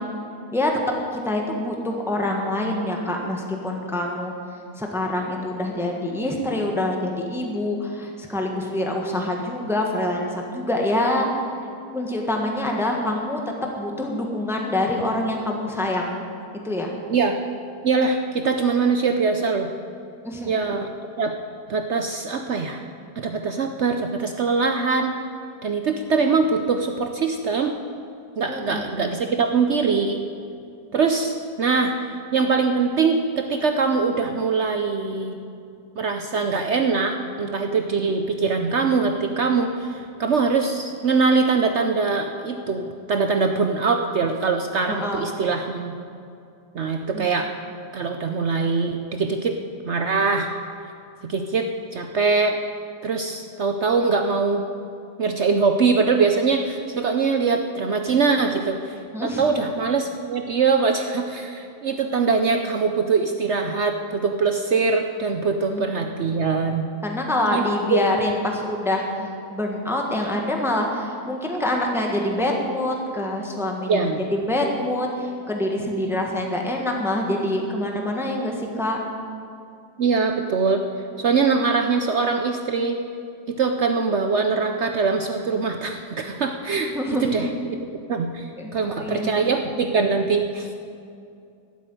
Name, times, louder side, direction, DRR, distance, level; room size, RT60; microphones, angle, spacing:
voice 1, 1.1-4.3 4.8-11.3 11.9-13.4 13.8-16.2 16.6-16.9 20.2-20.5 28.5-28.8 44.9-45.2 47.1-47.3 59.1-59.4 65.7-65.8 67.0-69.0 69.5-73.9 74.3-79.0 86.9-87.3 88.6-88.7 89.0-89.3, left 1 dB, ahead, 1 dB, 1.3 m, -25 dB
voice 2, 17.8-19.7 20.5-20.9 21.2-21.3 21.7-22.8 23.2-25.2 25.6-27.8 28.4-30.2 30.9-35.4 36.0-46.0 46.7-47.5 47.9-49.6 49.8-50.5 51.2-52.6 53.0-54.6 55.2-66.9 67.5-67.6 67.9-68.0 73.9-74.2 80.0-80.8 81.2-83.0 83.5-90.7, right 4 dB, 55° right, 5 dB, 0.8 m, -22 dB
12.5 x 8.3 x 9.1 m, 2.5 s
omnidirectional pair, 1.7 m